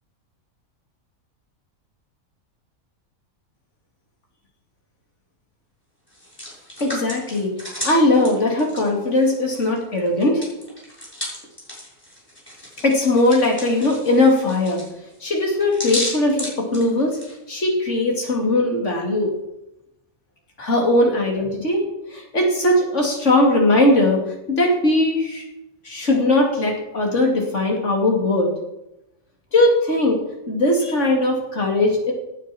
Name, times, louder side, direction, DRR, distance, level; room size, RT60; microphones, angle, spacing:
Hands, 6.1-9.8 10.1-17.3, left 1 dB, 15° left, 6.3 m, -33 dB
voice 1, 6.8-10.4 12.8-14.8 15.2-17.2 17.5-19.3 20.6-21.8 22.1-24.2 24.5-25.4 25.8-28.5 29.5-30.2 30.5-32.1, left 1 dB, 55° left, 0 dB, 3.1 m, -19 dB
17.0 x 9.2 x 4.5 m, 0.88 s
omnidirectional pair, 1.5 m